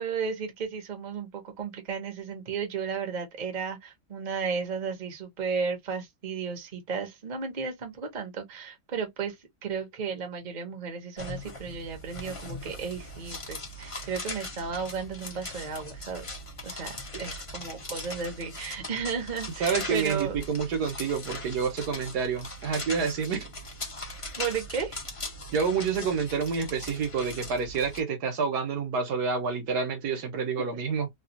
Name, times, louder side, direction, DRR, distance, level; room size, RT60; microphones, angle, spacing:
voice 1, 0.0-9.4 9.6-16.2 16.6-20.4 24.4-25.0 30.1-30.2 30.6-30.7, right 5 dB, 35° right, 0.8 m, -34 dB
sound 1, 11.2-28.0, left 2 dB, 30° left, 0.6 m, -40 dB
voice 2, 19.6-23.5 25.5-31.1, right 5 dB, 70° right, 1.4 m, -28 dB
3.2 x 2.3 x 2.9 m
omnidirectional pair, 1.8 m